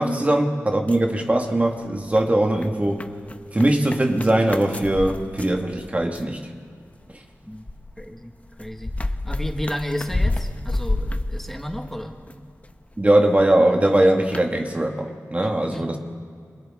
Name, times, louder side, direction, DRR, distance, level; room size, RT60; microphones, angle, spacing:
voice 1, 0.0-3.0 3.5-6.4 13.0-16.0, right 1 dB, 25° right, 2 dB, 1.6 m, -20 dB
sound 1, 0.7-1.7 2.0-6.4 7.0-12.3 12.6-13.5 13.9-14.0 14.3-14.5, left 2 dB, 25° left, 0.9 m, -29 dB
voice 2, 8.0-8.3 8.6-8.9 9.2-12.2 15.4-15.9, equal, 5° left, 3 dB, 1.7 m, -32 dB
28.0 x 26.5 x 3.7 m, 2.2 s
wide cardioid pair, 90°, 6 cm